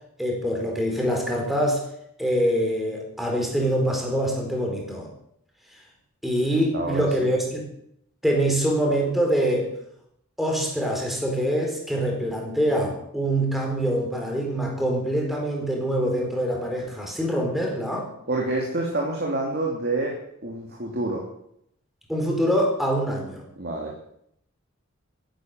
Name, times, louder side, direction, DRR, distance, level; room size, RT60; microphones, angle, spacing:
voice 1, 0.2-1.8 2.2-5.1 6.2-7.6 8.2-9.7 10.4-18.1 22.1-23.4, equal, ahead, -1 dB, 4.2 m, -24 dB
voice 2, 6.7-7.3 18.3-21.3 23.6-23.9, right 2 dB, 50° right, -1 dB, 3.0 m, -28 dB
14.5 x 11.5 x 7.8 m, 0.74 s
head